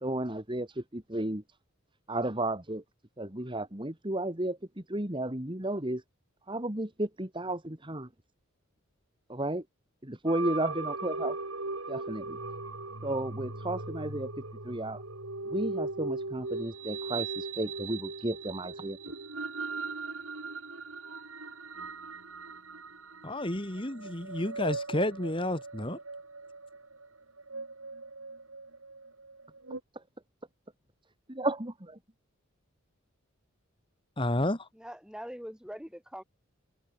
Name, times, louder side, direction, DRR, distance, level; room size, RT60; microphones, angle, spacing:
voice 1, 0.0-1.4 2.1-2.8 3.2-6.0 6.5-8.1 9.3-9.6 10.0-11.4 11.9-12.4 13.0-14.3 14.6-15.0 15.5-19.0 30.0-30.1 31.3-31.7, right 1 dB, 25° right, 2.3 m, -33 dB
sound 1, 10.3-29.8, right 3 dB, 80° right, 4.4 m, -39 dB
voice 2, 23.2-26.0 34.2-34.7, left 1 dB, 25° left, 2.1 m, -31 dB
voice 3, 34.7-36.2, equal, 5° right, 6.1 m, -43 dB
head